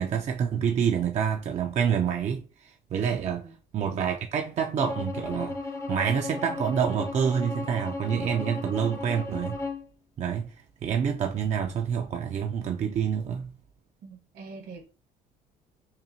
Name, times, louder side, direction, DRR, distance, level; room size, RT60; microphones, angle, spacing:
voice 1, 0.0-3.5 3.7-5.6 5.9-9.6 10.2-10.5 10.8-13.5, right 7 dB, 40° right, 0.4 m, -27 dB
voice 2, 3.1-3.5 14.0-14.8, right 5 dB, 65° right, 1.3 m, -44 dB
Bowed string instrument, 4.8-9.9, left 3 dB, 20° left, 0.5 m, -35 dB
5.6 x 2.2 x 2.8 m
cardioid pair, 110°, 17 cm